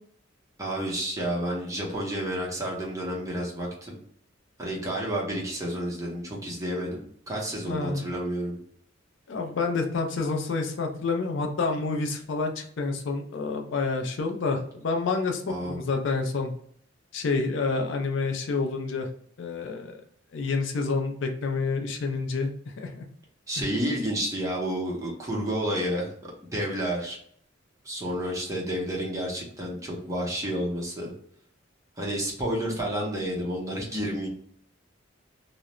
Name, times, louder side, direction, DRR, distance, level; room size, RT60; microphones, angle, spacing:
voice 1, 0.6-4.0 4.6-8.6 15.5-15.8 23.5-26.1 26.5-27.2 27.8-31.1 32.0-34.3, equal, 15° right, -3 dB, 0.7 m, -30 dB
voice 2, 7.6-8.0 9.3-16.5 17.1-19.1 19.4-20.0 20.3-22.5 22.8-23.0 23.6-23.7, left 4 dB, 65° left, 3 dB, 0.4 m, -28 dB
2.4 x 2.0 x 2.9 m, 0.63 s
head